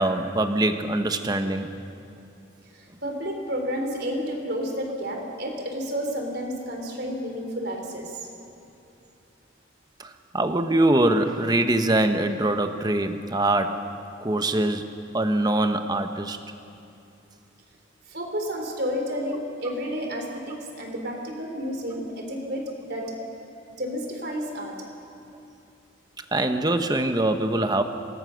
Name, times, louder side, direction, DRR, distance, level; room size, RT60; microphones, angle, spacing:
voice 1, 0.0-1.7 10.0-13.8 14.2-16.4 26.3-27.8, right 1 dB, 20° right, 7 dB, 1.1 m, -23 dB
voice 2, 2.7-8.3 18.1-23.1 23.8-24.8, equal, 55° right, 2 dB, 3.8 m, -31 dB
27.0 x 19.5 x 6.5 m, 2.7 s
head